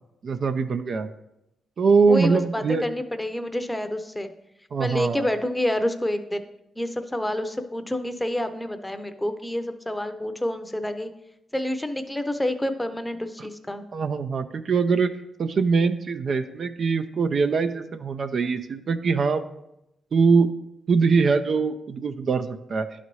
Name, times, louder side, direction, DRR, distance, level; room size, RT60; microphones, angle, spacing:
voice 1, 0.2-1.1 1.8-2.8 4.7-5.3 13.9-15.1 15.4-19.4 20.1-20.5 20.9-22.9, right 5 dB, 60° right, 8 dB, 0.4 m, -22 dB
voice 2, 2.1-4.3 4.8-6.4 6.8-11.1 11.5-13.9, left 1 dB, 10° left, 9 dB, 0.7 m, -28 dB
11.0 x 4.1 x 3.1 m, 0.86 s
supercardioid pair, 50°, 0 cm